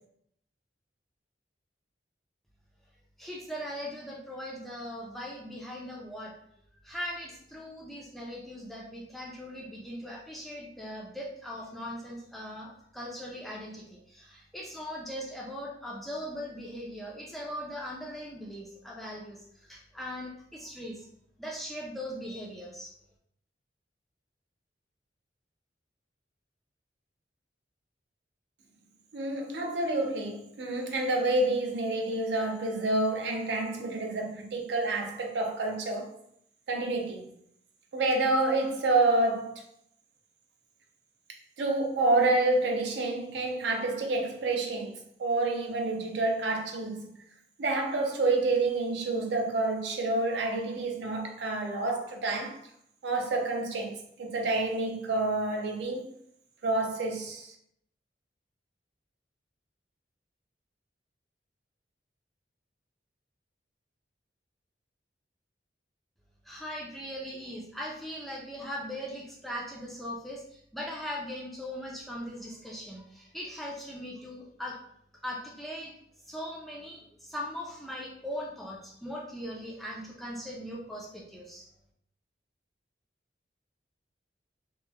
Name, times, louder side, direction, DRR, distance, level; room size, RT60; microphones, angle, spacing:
voice 1, 3.2-6.4 6.8-21.1 21.4-22.9 66.5-74.8 75.2-75.9 76.3-81.7, equal, ahead, 0.3 m, -40 dB
voice 2, 29.1-36.1 36.7-37.3 37.9-39.5 41.6-47.1 47.6-52.6 53.0-53.9 54.2-56.1 56.6-57.5, right 2 dB, 70° right, 0.4 m, -28 dB
2.9 x 2.0 x 2.2 m
head